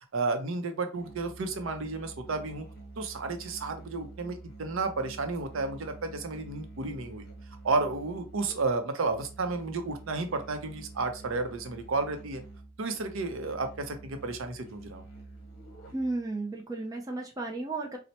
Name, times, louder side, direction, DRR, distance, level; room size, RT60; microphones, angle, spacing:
voice 1, 0.1-2.7 3.0-7.3 7.6-12.4 12.8-15.0, right 3 dB, 65° right, 7 dB, 0.6 m, -32 dB
Musical instrument, 0.9-16.3, right 3 dB, 45° left, 1.0 m, -48 dB
voice 2, 15.9-18.0, right 2 dB, 15° right, 0 dB, 0.4 m, -33 dB
4.2 x 2.1 x 2.7 m, 0.32 s
head